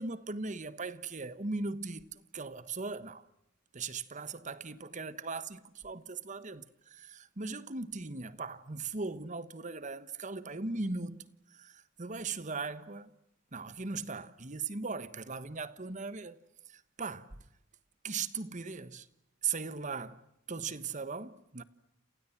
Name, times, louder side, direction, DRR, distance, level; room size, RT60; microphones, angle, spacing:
voice 1, 0.0-3.3 3.7-11.2 11.5-13.1 13.5-16.4 16.7-17.4 18.0-19.1 19.4-21.6, right 4 dB, 40° right, 1.2 m, -39 dB
30.0 x 28.5 x 5.9 m
head